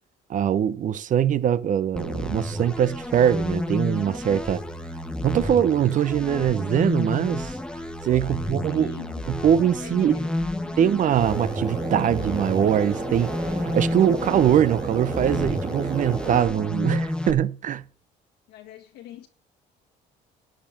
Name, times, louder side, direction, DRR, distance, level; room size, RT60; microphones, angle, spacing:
voice 1, 0.3-4.6 5.2-7.5 8.0-9.0 9.3-10.2 10.8-17.8, right 9 dB, 50° right, 0.7 m, -22 dB
sound 1, 2.0-17.3, left 1 dB, 5° left, 1.3 m, -31 dB
voice 2, 8.2-9.2 9.8-10.8 18.5-19.3, left 11 dB, 90° left, 1.7 m, -44 dB
sound 2, 11.2-16.4, right 3 dB, 25° right, 2.6 m, -32 dB
11.5 x 5.2 x 8.4 m
cardioid pair, 110°, 17 cm